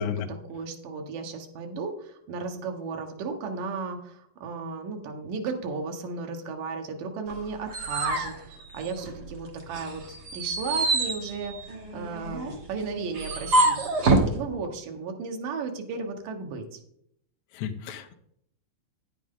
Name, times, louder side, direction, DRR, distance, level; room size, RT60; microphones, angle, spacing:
voice 1, 0.0-16.8, right 4 dB, 80° right, 3 dB, 2.8 m, -35 dB
sound 1, 7.3-9.3 9.7-14.3, right 2 dB, 55° right, 1.1 m, -26 dB
voice 2, 17.5-18.1, left 8 dB, 70° left, 5 dB, 2.0 m, -32 dB
9.3 x 9.1 x 3.7 m, 0.72 s
omnidirectional pair, 3.8 m